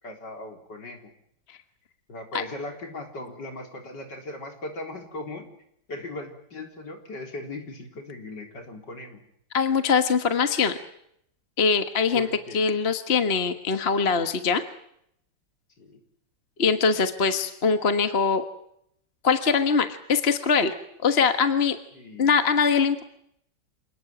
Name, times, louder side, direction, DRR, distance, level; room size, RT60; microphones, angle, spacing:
voice 1, 0.0-1.1 2.1-5.5 5.9-9.2 12.1-12.6 15.8-16.0 21.9-22.3, left 2 dB, 65° left, 4 dB, 4.7 m, -38 dB
voice 2, 9.5-10.8 11.6-12.3 12.5-14.6 16.6-18.4 19.2-20.7 21.0-21.8 22.2-23.0, left 5 dB, 35° left, 8 dB, 1.6 m, -22 dB
27.5 x 19.0 x 9.1 m, 0.73 s
omnidirectional pair, 2.0 m